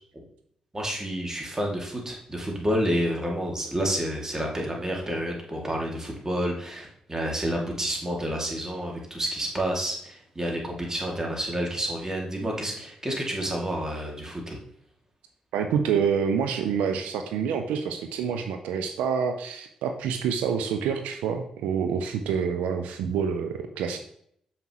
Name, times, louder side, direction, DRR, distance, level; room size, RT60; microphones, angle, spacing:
voice 1, 0.7-14.6, equal, 25° right, -1 dB, 2.3 m, -29 dB
voice 2, 15.5-24.0, right 7 dB, 90° right, 6 dB, 0.5 m, -27 dB
7.1 x 5.5 x 3.0 m, 0.68 s
supercardioid pair, 45°, 2 cm